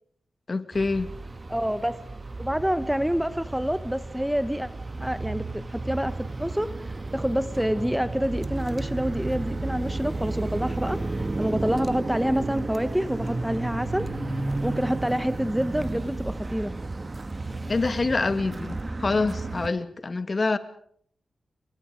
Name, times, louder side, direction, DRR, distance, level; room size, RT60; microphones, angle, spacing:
voice 1, 0.5-1.1 17.7-20.6, left 3 dB, 35° left, 11 dB, 2.2 m, -26 dB
sound 1, 0.7-19.7, right 2 dB, 30° right, 1.7 m, -33 dB
voice 2, 1.5-2.0 2.4-4.7 5.0-6.1 6.4-14.1 14.6-16.7, equal, 5° right, 12 dB, 1.0 m, -27 dB
29.5 x 24.0 x 5.1 m, 0.63 s
wide cardioid pair, 90°, 0 cm